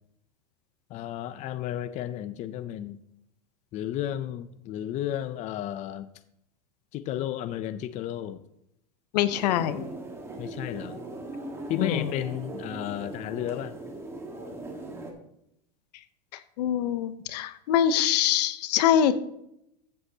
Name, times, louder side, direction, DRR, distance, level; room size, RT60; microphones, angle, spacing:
voice 1, 0.9-3.0 3.7-6.1 6.9-8.4 10.4-11.0 11.7-13.8, left 11 dB, 35° left, 11 dB, 0.5 m, -33 dB
voice 2, 9.1-9.9 11.8-12.1 16.6-19.1, left 10 dB, 75° left, 12 dB, 0.9 m, -24 dB
sound 1, 9.3-15.1, right 2 dB, 10° right, 1.5 m, -39 dB
14.0 x 8.0 x 2.9 m, 0.79 s
supercardioid pair, 135°, 21 cm